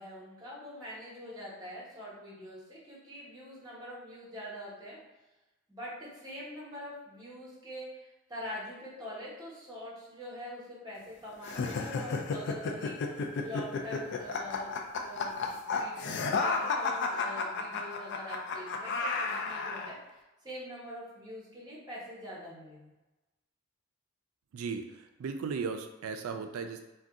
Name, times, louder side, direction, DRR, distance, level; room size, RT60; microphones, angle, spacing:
voice 1, 0.0-5.0 5.7-14.7 15.0-22.9, left 1 dB, 20° right, -6 dB, 1.1 m, -44 dB
sound 1, 11.4-19.9, left 4 dB, 55° left, 0.3 m, -32 dB
voice 2, 24.5-26.8, right 5 dB, 90° right, 6 dB, 0.3 m, -36 dB
2.6 x 2.2 x 3.5 m, 1.1 s
head